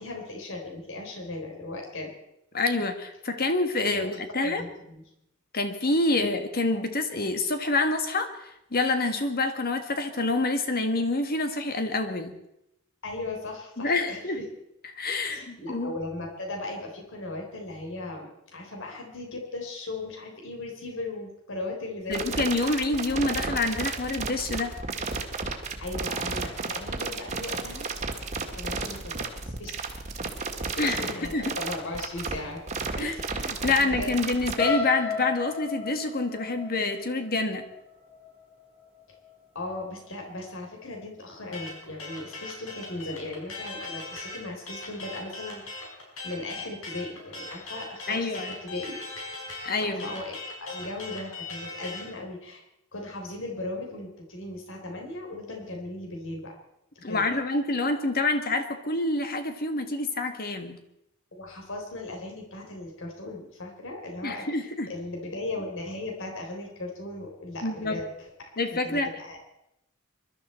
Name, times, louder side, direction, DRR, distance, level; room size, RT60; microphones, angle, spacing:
voice 1, 0.0-2.1 3.8-4.1 4.4-5.0 6.2-6.3 13.0-14.5 15.3-22.4 25.8-27.9 28.4-29.7 30.8-32.6 33.0-34.2 39.5-45.6 46.2-49.0 49.8-52.6 52.9-56.5 57.1-57.4 61.3-64.5 64.9-68.1 68.8-69.4, left 2 dB, 65° left, 1 dB, 3.8 m, -37 dB
voice 2, 2.5-4.6 5.5-12.3 13.8-14.4 15.0-16.0 22.1-24.7 30.8-31.6 33.0-33.1 33.5-37.7 48.1-48.5 49.6-50.1 57.0-60.8 64.2-64.9 67.6-68.0 68.6-69.1, left 2 dB, 45° left, 7 dB, 1.7 m, -27 dB
sound 1, 22.1-34.5, right 4 dB, 35° right, 1.7 m, -32 dB
sound 2, 34.6-38.5 39.0-39.3 39.7-39.8, left 5 dB, 30° left, 5.6 m, -32 dB
sound 3, 41.5-52.1, left 3 dB, 85° left, 5.3 m, -39 dB
24.0 x 12.5 x 4.4 m, 0.84 s
head